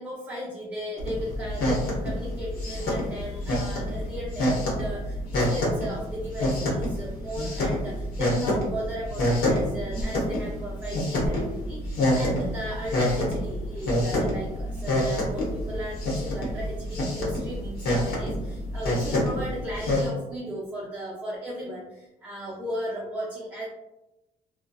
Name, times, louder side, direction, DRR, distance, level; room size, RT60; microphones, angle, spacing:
voice 1, 0.0-23.7, equal, 10° right, -6 dB, 0.5 m, -36 dB
sound 1, 1.0-20.1, left 1 dB, 75° left, 0.9 m, -27 dB
2.7 x 2.2 x 2.2 m, 0.94 s
cardioid pair, 115°, 16 cm